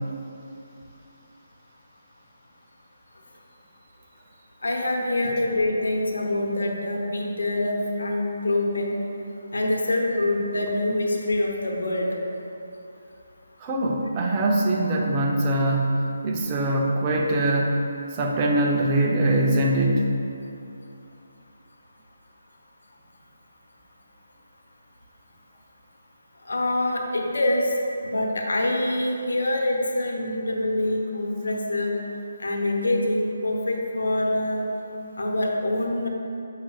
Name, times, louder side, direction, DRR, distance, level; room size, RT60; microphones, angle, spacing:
voice 1, 4.6-8.9 9.5-12.2 26.5-27.7 28.0-31.9 32.4-34.7 35.2-36.1, left 1 dB, 80° left, 0 dB, 1.0 m, -25 dB
voice 2, 13.6-17.8 18.2-20.1, right 1 dB, 20° right, -1 dB, 0.6 m, -22 dB
7.3 x 5.6 x 2.4 m, 2.7 s
hypercardioid pair, 160°, 0 cm